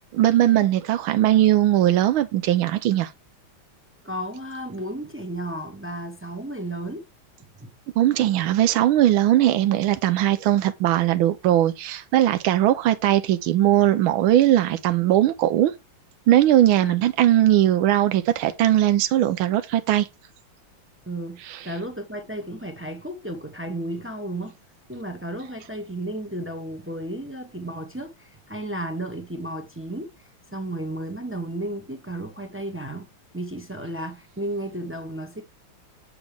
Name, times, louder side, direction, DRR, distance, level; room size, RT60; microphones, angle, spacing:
voice 1, 0.1-3.1 8.0-15.7 16.3-20.1, right 13 dB, 90° right, 1.5 m, -19 dB
voice 2, 4.0-7.1 7.4-7.7 16.8-17.0 21.1-24.6 24.9-35.4, right 1 dB, 10° right, 0.6 m, -33 dB
8.5 x 5.9 x 3.5 m
omnidirectional pair, 2.2 m